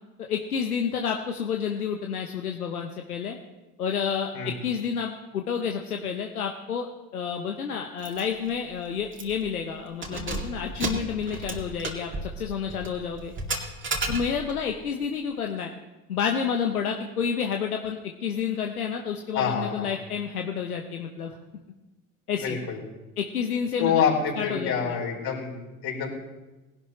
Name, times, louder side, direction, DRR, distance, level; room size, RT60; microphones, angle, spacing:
voice 1, 0.2-3.4 3.8-6.9 7.1-13.3 14.1-15.7 16.1-21.4 22.3-22.6 23.2-24.0 24.4-25.0, left 7 dB, 85° left, 3 dB, 0.9 m, -30 dB
Keys jangling, 8.0-8.2 8.6-8.7 9.1-9.5 9.9-14.6, right 3 dB, 25° right, 2.3 m, -33 dB
voice 2, 19.3-20.0 22.4-22.8 23.8-25.6 25.8-26.1, left 6 dB, 55° left, -2 dB, 4.6 m, -26 dB
19.0 x 11.5 x 3.1 m, 1.1 s
hypercardioid pair, 70°, 43 cm